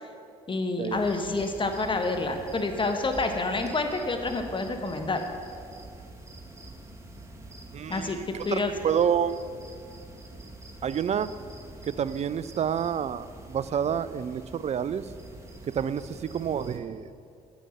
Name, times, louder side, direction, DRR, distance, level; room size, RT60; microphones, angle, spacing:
voice 1, 0.5-5.2 7.9-8.7, left 3 dB, 25° left, 5 dB, 1.3 m, -28 dB
sound 1, 0.9-16.8, right 1 dB, 15° right, 1.8 m, -45 dB
voice 2, 7.7-8.6 8.8-9.4 10.8-11.3 11.8-15.1 15.7-17.3, right 8 dB, 35° right, 15 dB, 0.5 m, -29 dB
9.4 x 9.2 x 6.5 m, 2.4 s
figure-of-eight pair, 50°, 20 cm